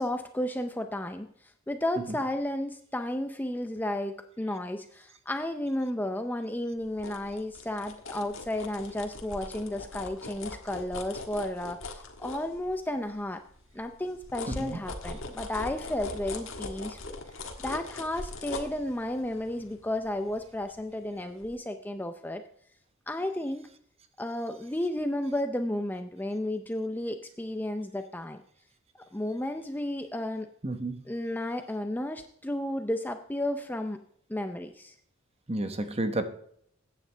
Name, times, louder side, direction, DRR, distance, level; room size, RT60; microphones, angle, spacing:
voice 1, 0.0-13.4 13.7-17.2 17.6-22.4 23.1-23.6 24.2-28.4 29.1-30.5 31.1-34.0 34.3-34.9, left 1 dB, 10° left, 7 dB, 0.5 m, -33 dB
sound 1, 6.8-13.1 13.5-21.0 21.4-21.5, left 2 dB, 65° left, 1.6 m, -41 dB
voice 2, 30.6-31.0 35.5-36.2, right 1 dB, 30° right, 8 dB, 1.0 m, -31 dB
15.0 x 9.1 x 3.4 m, 0.66 s
head